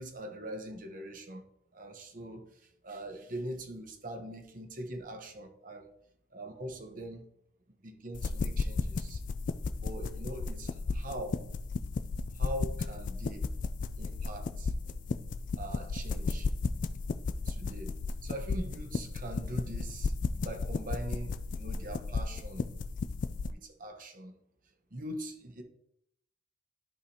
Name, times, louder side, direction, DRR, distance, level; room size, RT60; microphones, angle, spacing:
voice 1, 0.0-1.4 1.7-2.4 2.8-5.9 6.3-7.2 7.8-9.2 9.8-11.4 12.3-13.5 14.0-14.7 15.6-16.5 17.5-17.9 18.2-22.7 23.5-24.3 24.9-25.6, right 1 dB, 45° right, 4 dB, 1.1 m, -42 dB
sound 1, 8.1-23.5, left 4 dB, 45° left, 0.3 m, -34 dB
12.0 x 5.0 x 2.8 m, 0.76 s
head